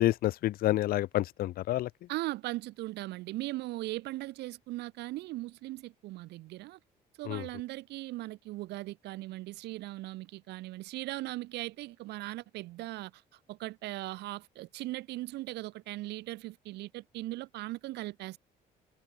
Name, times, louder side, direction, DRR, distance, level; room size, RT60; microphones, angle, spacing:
voice 1, 0.0-1.9 7.3-7.4, left 15 dB, 65° left, 0.5 m, -28 dB
voice 2, 2.1-6.8 7.2-13.2 13.5-18.4, right 18 dB, 85° right, 2.8 m, -39 dB
cardioid pair, 110°, 17 cm